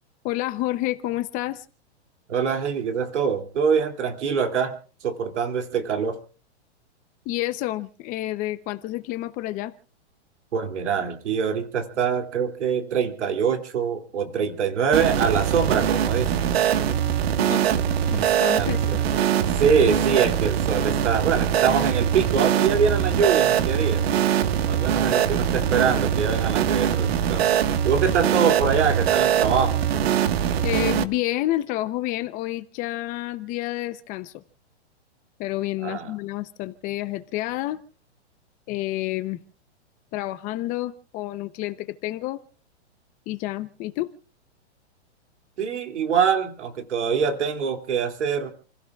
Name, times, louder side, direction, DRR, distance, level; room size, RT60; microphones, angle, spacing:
voice 1, 0.2-1.6 7.3-9.7 17.4-17.6 18.1-19.0 30.6-34.4 35.4-37.8 38.7-39.4 40.1-42.4 43.3-44.1, left 16 dB, 25° left, 11 dB, 0.8 m, -29 dB
voice 2, 2.3-4.7 5.0-6.2 10.5-16.4 18.5-19.1 19.6-24.0 24.6-29.8 35.8-36.1 45.6-48.5, right 6 dB, 80° right, 5 dB, 2.9 m, -24 dB
sound 1, 14.9-31.0, right 9 dB, 60° right, 1.6 m, -22 dB
29.5 x 16.5 x 2.4 m, 0.40 s
hypercardioid pair, 150°, 34 cm